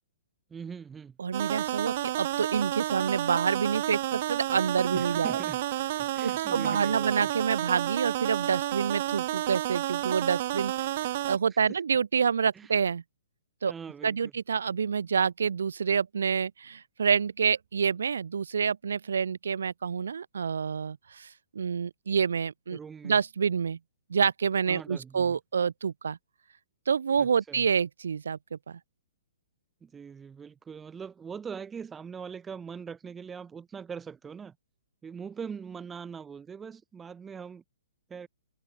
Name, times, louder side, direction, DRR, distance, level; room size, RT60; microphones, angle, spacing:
voice 1, 0.5-1.2 4.9-5.6 6.0-7.3 11.5-11.8 12.5-12.8 13.7-14.2 22.7-23.2 24.7-25.4 27.2-27.7 29.8-34.6 35.0-37.6 38.1-38.3, right 6 dB, 15° right, 2.1 m, -42 dB
voice 2, 1.2-5.4 6.2-13.0 13.6-13.7 14.0-21.3 21.5-22.8 23.0-23.8 24.1-26.2 26.9-28.8, right 6 dB, 80° right, 1.6 m, -28 dB
sound 1, 1.3-11.4, right 15 dB, 50° right, 2.4 m, -31 dB
hypercardioid pair, 135°, 0 cm